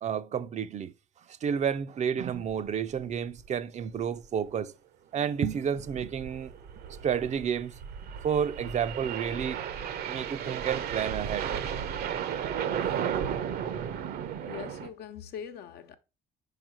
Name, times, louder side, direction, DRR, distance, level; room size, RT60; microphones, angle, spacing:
voice 1, 0.0-0.9 1.4-4.7 5.1-6.5 7.0-7.7 8.2-9.6 10.1-11.6 13.0-13.1, right 8 dB, 45° right, 0.6 m, -30 dB
sound 1, 2.5-2.7 3.0-3.1 3.4-3.5 4.0-4.3 5.6-14.9, right 8 dB, 65° right, 0.9 m, -34 dB
voice 2, 14.4-16.0, left 8 dB, 70° left, 0.9 m, -42 dB
4.9 x 4.8 x 6.2 m
cardioid pair, 110°, 17 cm